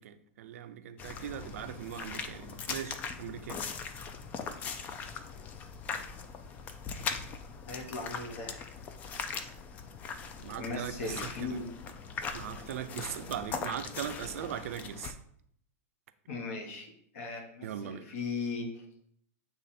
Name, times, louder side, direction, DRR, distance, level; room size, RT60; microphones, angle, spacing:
voice 1, 0.0-3.6 10.4-11.6 12.3-15.1 17.6-18.1, right 10 dB, 70° right, 0.5 m, -40 dB
sound 1, 1.0-15.1, left 5 dB, 20° left, 0.3 m, -40 dB
voice 2, 6.9-7.2 7.7-8.6 10.6-11.7 16.3-18.8, left 4 dB, 65° left, 1.3 m, -38 dB
7.6 x 3.1 x 4.2 m
supercardioid pair, 160°, 8 cm